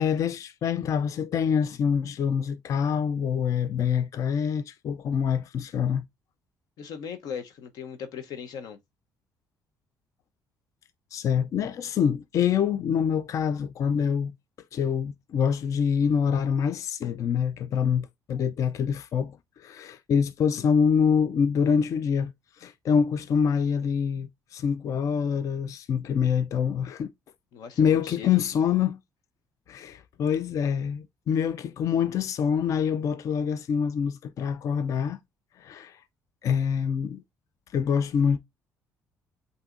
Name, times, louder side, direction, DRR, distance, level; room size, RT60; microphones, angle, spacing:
voice 1, 0.0-6.0 11.1-14.3 14.7-22.3 22.6-27.1 27.8-29.0 29.7-35.2 35.6-36.0 36.4-37.2 37.7-38.4, left 7 dB, 50° left, 0.4 m, -25 dB
voice 2, 6.8-8.8 27.5-28.3, left 7 dB, 70° left, 0.8 m, -38 dB
7.7 x 2.7 x 2.4 m
cardioid pair, 105°, 7 cm